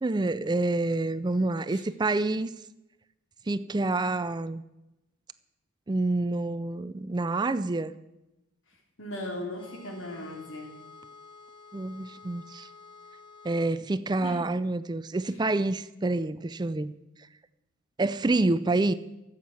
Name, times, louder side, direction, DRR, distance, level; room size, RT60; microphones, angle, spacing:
voice 1, 0.0-2.5 3.5-4.6 5.9-7.9 11.7-12.7 13.4-16.9 18.0-18.9, right 2 dB, 20° right, 14 dB, 0.4 m, -27 dB
voice 2, 9.0-10.8 14.2-14.4, left 1 dB, 80° left, 2 dB, 3.2 m, -38 dB
sound 1, 9.5-13.8, left 4 dB, 25° left, 1.1 m, -50 dB
13.5 x 7.4 x 8.8 m, 0.95 s
head